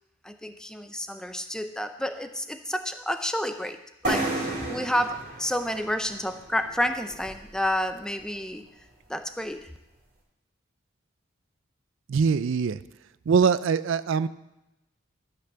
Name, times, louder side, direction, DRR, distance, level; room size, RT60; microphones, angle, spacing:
voice 1, 0.2-3.8 4.0-8.6 9.1-9.7, equal, 5° left, 8 dB, 0.6 m, -30 dB
sound 1, 4.0-7.7, right 2 dB, 40° right, 2.9 m, -33 dB
voice 2, 12.1-12.8 13.3-14.3, right 6 dB, 65° right, 16 dB, 0.4 m, -22 dB
13.5 x 5.9 x 6.8 m, 0.94 s
head